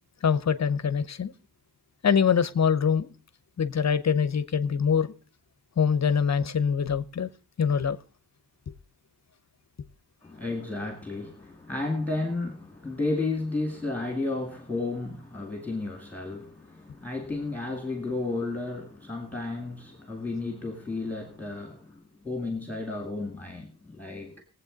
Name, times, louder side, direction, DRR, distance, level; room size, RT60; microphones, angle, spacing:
voice 1, 0.2-1.3 2.0-3.1 3.6-5.1 5.8-7.3 7.6-8.0, left 7 dB, 45° left, 0.8 m, -24 dB
voice 2, 10.2-24.4, left 2 dB, 5° left, 2.1 m, -33 dB
20.5 x 8.0 x 3.9 m
wide cardioid pair, 160°, 39 cm